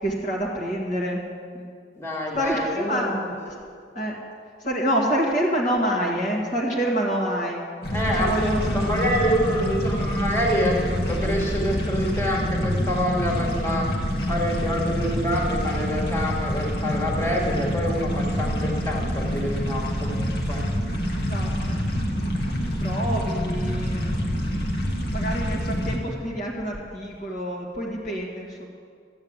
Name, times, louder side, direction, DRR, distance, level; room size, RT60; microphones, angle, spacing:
voice 1, 0.0-1.3 1.5-1.7 2.3-3.1 3.4-3.5 3.9-4.2 4.6-7.6 8.1-9.2 9.6-9.7 21.2-21.8 22.6-24.3 25.1-28.7, equal, 40° left, -3 dB, 1.8 m, -27 dB
voice 2, 2.0-3.1 7.9-20.6, equal, 15° left, -3 dB, 2.1 m, -26 dB
sound 1, 7.8-26.0, equal, 55° left, 1.9 m, -26 dB
12.5 x 8.9 x 8.8 m, 2.2 s
head